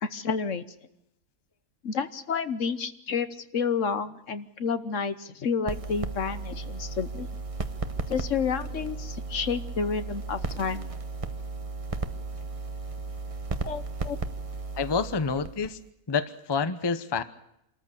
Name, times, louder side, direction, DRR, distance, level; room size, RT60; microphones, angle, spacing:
voice 1, 0.0-0.6 1.8-3.3 3.5-7.3 8.1-10.9 13.6-14.2, left 5 dB, 60° left, 12 dB, 1.3 m, -30 dB
sound 1, 5.7-15.9, right 3 dB, 25° right, 1.0 m, -35 dB
voice 2, 14.8-15.8 16.1-17.2, left 5 dB, 20° left, 13 dB, 0.8 m, -28 dB
26.5 x 14.0 x 8.2 m, 0.81 s
omnidirectional pair, 1.5 m